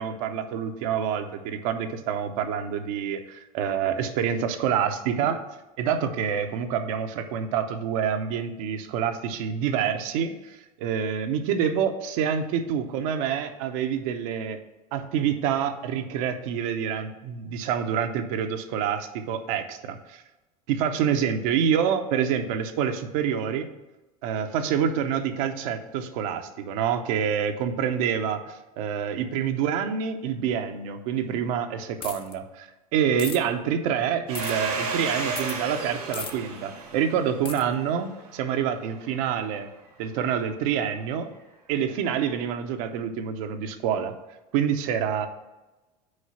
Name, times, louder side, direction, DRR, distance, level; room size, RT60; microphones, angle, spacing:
voice 1, 0.0-5.4 5.8-14.6 14.9-20.2 20.7-23.7 24.2-39.7 40.0-41.3 41.7-44.1 44.5-45.3, right 8 dB, 65° right, 7 dB, 0.8 m, -27 dB
sound 1, 32.0-32.3 33.2-33.4 34.3-34.5 35.4-35.6 36.1-36.3 37.5-37.6, left 6 dB, 25° left, 0.8 m, -35 dB
Domestic sounds home sounds, 34.3-38.7, right 4 dB, 90° right, 1.6 m, -33 dB
6.5 x 4.7 x 5.7 m, 1.1 s
hypercardioid pair, 80°, 20 cm